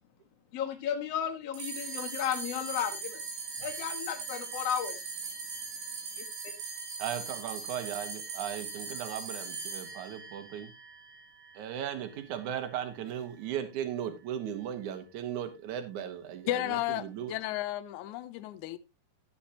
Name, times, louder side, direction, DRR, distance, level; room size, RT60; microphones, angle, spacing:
voice 1, 0.5-3.2 3.6-5.1 6.2-6.5, left 9 dB, 55° left, 2.1 m, -34 dB
sound 1, 1.5-12.2, right 4 dB, 85° right, 3.6 m, -40 dB
voice 2, 7.0-10.7 11.6-17.3, right 10 dB, 60° right, 2.6 m, -37 dB
voice 3, 16.5-18.8, left 15 dB, 80° left, 1.7 m, -33 dB
12.5 x 9.2 x 2.9 m
omnidirectional pair, 4.2 m